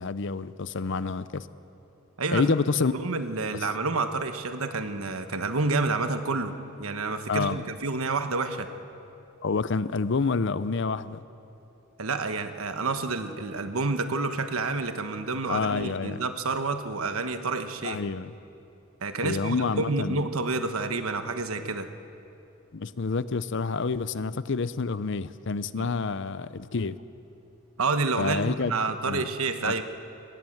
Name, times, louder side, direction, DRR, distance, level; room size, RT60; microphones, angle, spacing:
voice 1, 0.0-1.5 2.3-2.9 7.3-7.6 9.4-11.2 15.5-16.2 17.8-18.3 19.2-20.2 22.7-27.0 28.2-28.8 29.1-29.2 29.6-29.8, left 4 dB, 60° left, 15 dB, 0.6 m, -28 dB
voice 2, 2.2-2.5 2.9-8.7 12.0-18.0 19.0-21.9 25.8-25.9 27.8-29.8, right 3 dB, 85° right, 8 dB, 1.3 m, -29 dB
21.5 x 18.5 x 7.9 m, 2.9 s
head